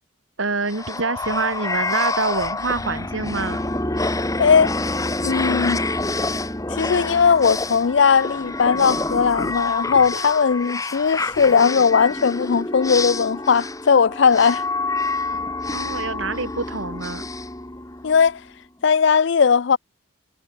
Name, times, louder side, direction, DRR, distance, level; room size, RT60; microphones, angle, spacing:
voice 1, 0.4-3.6 15.7-17.3, right 3 dB, 70° right, 2.4 m, -26 dB
sound 1, 0.6-18.3, left 2 dB, 15° left, 1.6 m, -27 dB
voice 2, 4.4-4.7 5.2-5.8 6.7-14.6 18.0-18.4 18.8-19.8, left 6 dB, 60° left, 0.4 m, -18 dB
head